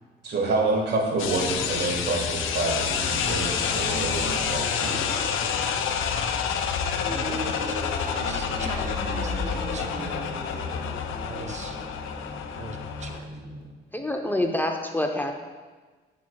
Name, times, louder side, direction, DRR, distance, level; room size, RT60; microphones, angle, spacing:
voice 1, 0.2-5.0, right 3 dB, 55° right, 1 dB, 1.7 m, -27 dB
sound 1, 1.2-13.2, left 7 dB, 80° left, 0.6 m, -28 dB
sound 2, 3.1-13.6, right 1 dB, 90° right, 2.3 m, -38 dB
voice 2, 7.1-10.2 11.1-11.8 12.6-13.4, right 3 dB, 35° right, 5 dB, 0.8 m, -41 dB
voice 3, 13.9-15.3, left 1 dB, 10° left, 3 dB, 0.7 m, -26 dB
9.1 x 7.2 x 2.3 m, 1.3 s
cardioid pair, 90°, 20 cm